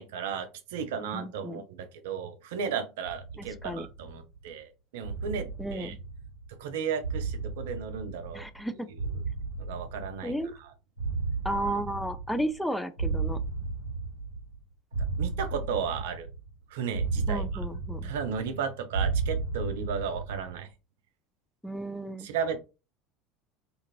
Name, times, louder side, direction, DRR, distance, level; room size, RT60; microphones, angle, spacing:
voice 1, 0.0-5.9 6.6-8.4 8.9-9.0 9.6-10.7 15.2-16.3 16.7-17.4 18.0-20.7 22.2-22.6, right 6 dB, 65° right, 0.5 m, -34 dB
voice 2, 1.1-1.6 3.4-3.9 5.6-6.0 8.3-8.9 10.2-10.5 11.4-13.4 17.3-18.1 21.6-22.3, right 1 dB, 5° left, 0.3 m, -33 dB
sound 1, 3.0-4.4 5.0-6.6 7.0-8.6 9.0-10.6 11.0-12.6 13.0-14.6 14.9-16.5 16.9-18.6 18.9-20.6, right 4 dB, 80° left, 1.1 m, -34 dB
2.6 x 2.4 x 2.9 m
figure-of-eight pair, 70°, 0 cm